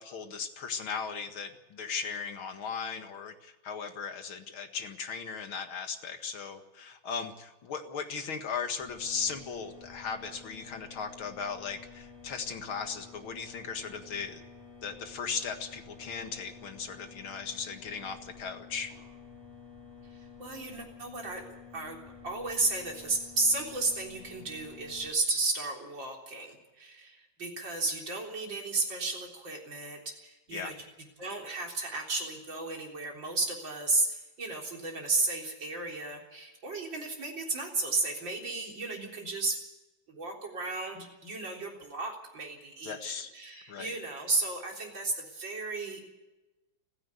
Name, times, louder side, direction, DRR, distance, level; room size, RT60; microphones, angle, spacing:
voice 1, 0.0-14.4 14.8-18.9 30.5-30.8 42.8-43.3 43.7-44.0, left 6 dB, 85° left, 7 dB, 2.6 m, -37 dB
sound 1, 8.8-25.1, left 6 dB, 10° right, 5.8 m, -51 dB
voice 2, 20.1-21.4 21.7-22.0 22.2-30.7 31.2-39.6 40.1-46.1, right 3 dB, 65° right, 1 dB, 4.5 m, -33 dB
29.5 x 10.5 x 8.3 m, 1.1 s
omnidirectional pair, 2.2 m